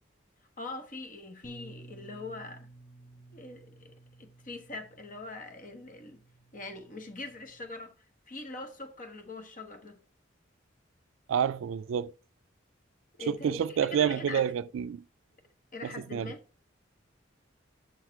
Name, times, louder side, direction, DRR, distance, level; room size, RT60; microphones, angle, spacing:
voice 1, 0.6-2.7 3.3-6.2 6.5-7.9 8.3-10.0 13.2-14.4 15.7-16.4, left 3 dB, 45° left, 1.2 m, -42 dB
Bass guitar, 1.4-7.7, right 2 dB, 15° left, 0.7 m, -54 dB
voice 2, 11.3-12.1 13.3-15.0 15.8-16.3, right 8 dB, 80° right, 0.3 m, -29 dB
6.5 x 6.4 x 4.6 m
head